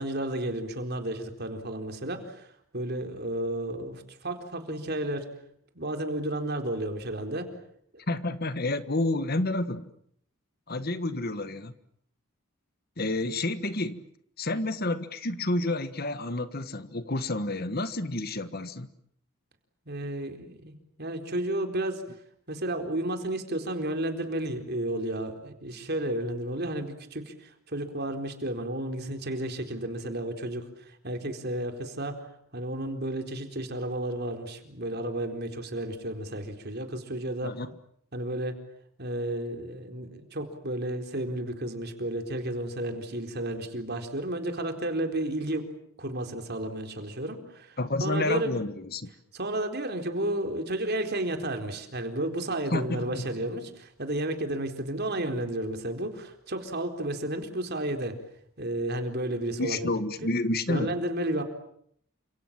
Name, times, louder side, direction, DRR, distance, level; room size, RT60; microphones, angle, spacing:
voice 1, 0.0-2.5 2.7-5.3 5.7-7.5 19.9-22.0 22.5-37.5 38.1-38.6 39.0-45.7 46.0-48.6 49.3-58.1 58.6-60.3 60.7-61.4, right 1 dB, 45° right, 5 dB, 4.2 m, -32 dB
voice 2, 8.1-9.9 10.7-11.7 13.0-14.1 14.4-18.9 37.4-37.7 47.8-49.1 52.7-53.2 59.6-60.9, left 2 dB, 45° left, 12 dB, 1.5 m, -29 dB
29.5 x 27.0 x 7.5 m, 0.69 s
head